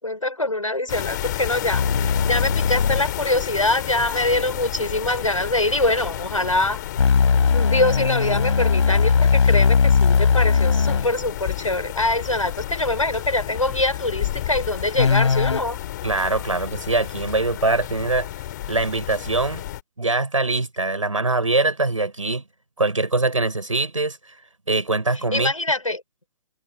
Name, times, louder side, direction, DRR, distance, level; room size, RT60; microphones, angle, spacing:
voice 1, 0.0-6.8 7.5-15.8 25.1-26.0, left 2 dB, 85° left, 6.6 m, -24 dB
sound 1, 0.9-19.8, left 14 dB, 35° left, 4.1 m, -31 dB
sound 2, 1.7-3.1 7.0-11.1 14.9-15.6, left 5 dB, 60° left, 7.7 m, -19 dB
voice 2, 16.0-18.3 18.7-19.6 20.0-22.4 22.8-24.2 24.7-25.5, right 3 dB, 75° right, 6.9 m, -23 dB
figure-of-eight pair, 130°, 17 cm